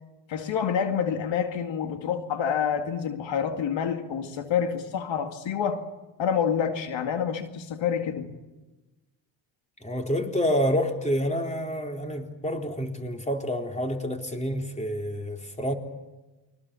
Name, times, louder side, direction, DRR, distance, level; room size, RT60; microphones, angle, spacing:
voice 1, 0.3-5.8 6.2-8.3, left 7 dB, 75° left, 2.3 m, -27 dB
voice 2, 9.8-15.7, equal, 15° left, 4.2 m, -28 dB
29.0 x 24.0 x 7.0 m
cardioid pair, 80°, 45 cm